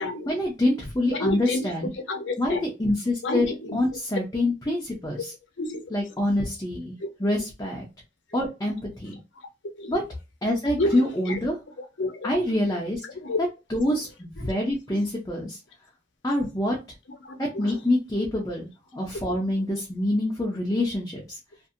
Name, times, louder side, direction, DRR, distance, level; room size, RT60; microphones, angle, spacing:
voice 1, 0.3-1.9 2.4-3.5 3.7-5.3 5.9-6.9 7.2-7.8 8.3-9.2 9.9-10.0 10.4-11.6 12.2-13.0 13.7-15.6 16.2-16.8 17.4-21.4, left 1 dB, 20° left, 0.5 m, -26 dB
voice 2, 1.1-2.8 3.2-3.8 5.2-5.3 5.6-6.0 7.0-7.1 8.3-8.4 9.8-10.0 10.8-11.4 11.8-12.6 13.1-13.4 14.4-14.6 17.2-17.8 19.5-19.6, left 2 dB, 90° left, 0.7 m, -30 dB
2.7 x 2.5 x 2.5 m
head